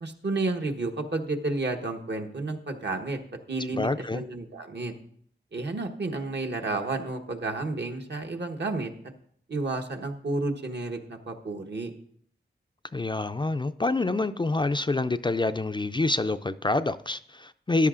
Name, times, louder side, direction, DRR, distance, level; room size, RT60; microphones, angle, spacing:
voice 1, 0.0-3.2 3.5-4.9 5.5-8.9 9.5-11.9, right 2 dB, 60° right, 3 dB, 1.1 m, -31 dB
voice 2, 3.7-4.2 12.9-17.9, left 2 dB, 25° left, 10 dB, 0.4 m, -27 dB
14.0 x 10.5 x 2.5 m, 0.62 s
wide cardioid pair, 65°, 20 cm